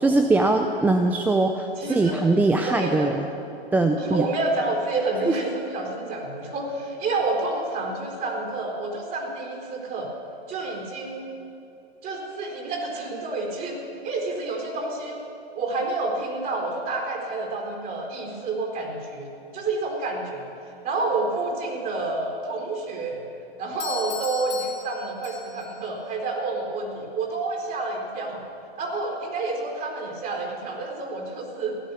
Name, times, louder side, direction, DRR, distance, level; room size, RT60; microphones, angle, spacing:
voice 1, 0.0-3.3 3.7-4.3 5.3-5.4, right 2 dB, 5° right, 5 dB, 0.4 m, -21 dB
voice 2, 1.8-2.2 2.6-3.1 4.0-10.1 10.5-11.3 12.0-13.8 14.0-15.2 15.6-20.5 20.8-23.2 23.6-28.4 28.8-31.8, right 3 dB, 30° right, 0 dB, 4.2 m, -29 dB
Doorbell, 23.8-25.8, left 5 dB, 20° left, 3.1 m, -36 dB
16.5 x 11.0 x 7.1 m, 2.8 s
hypercardioid pair, 110°, 31 cm